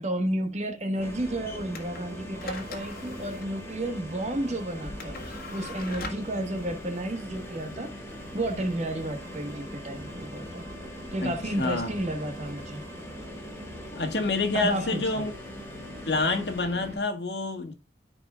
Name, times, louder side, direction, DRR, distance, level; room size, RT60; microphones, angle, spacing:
voice 1, 0.0-7.9 8.3-10.6 11.1-12.8 14.5-15.3, right 1 dB, 40° right, 1.4 m, -32 dB
sound 1, 0.9-17.0, right 1 dB, 85° right, 1.7 m, -46 dB
sound 2, 1.0-17.0, left 1 dB, 15° left, 1.6 m, -42 dB
sound 3, 1.7-10.2, left 3 dB, 55° left, 1.8 m, -43 dB
voice 2, 11.2-11.9 13.9-15.3 16.1-17.7, left 3 dB, 75° left, 1.8 m, -28 dB
14.0 x 4.9 x 2.4 m
head